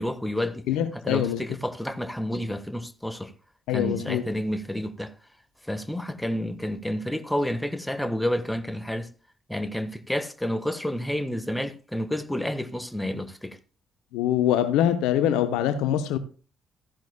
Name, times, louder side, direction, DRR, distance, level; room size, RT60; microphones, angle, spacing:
voice 1, 0.0-0.6 1.0-3.3 3.7-5.1 5.7-9.1 9.5-13.6, left 1 dB, 5° left, 1.4 m, -30 dB
voice 2, 0.7-1.4 3.7-4.2 14.1-16.2, left 10 dB, 70° left, 0.8 m, -24 dB
15.0 x 10.5 x 2.2 m
hypercardioid pair, 45°, 0 cm